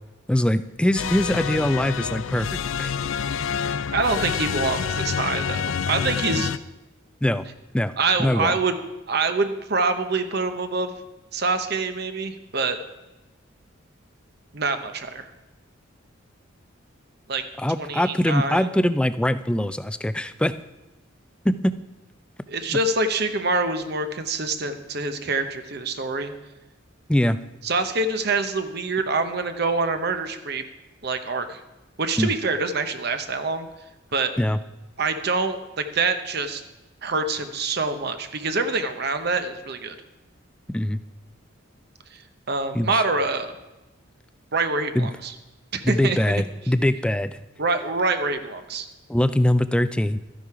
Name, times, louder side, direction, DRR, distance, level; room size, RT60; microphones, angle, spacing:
voice 1, 0.3-2.9 6.3-6.5 7.2-7.4 7.7-7.9 8.2-8.5 17.6-20.5 21.4-21.7 22.7-22.8 27.1-27.4 32.2-32.3 34.4-34.6 40.7-41.0 42.7-43.0 44.9-45.1 45.8-47.4 49.1-50.2, left 1 dB, 5° left, 13 dB, 0.3 m, -22 dB
sound 1, 1.0-6.6, left 7 dB, 80° left, 0.4 m, -27 dB
voice 2, 3.9-6.5 8.0-8.7 9.1-11.0 11.3-12.8 14.5-15.3 17.3-17.4 17.8-18.7 22.5-26.3 27.6-30.6 31.0-31.6 32.0-33.7 34.1-34.3 35.0-36.6 37.0-39.9 42.1-42.2 42.5-43.5 44.5-45.3 45.7-46.3 47.6-48.9, right 3 dB, 55° right, 8 dB, 0.9 m, -25 dB
13.0 x 10.0 x 4.8 m, 1.1 s
head